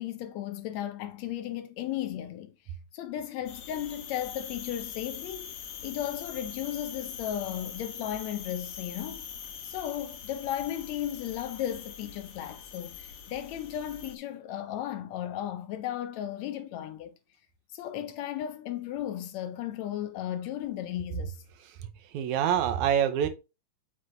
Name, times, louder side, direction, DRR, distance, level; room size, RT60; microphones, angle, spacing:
voice 1, 0.0-2.5 2.9-5.5 5.8-9.3 9.6-17.2 17.7-21.4, left 11 dB, 75° left, 1.7 m, -35 dB
sound 1, 3.5-14.2, left 7 dB, 60° left, 1.8 m, -43 dB
voice 2, 21.8-23.3, right 9 dB, 75° right, 2.2 m, -26 dB
8.1 x 5.6 x 2.6 m
omnidirectional pair, 3.5 m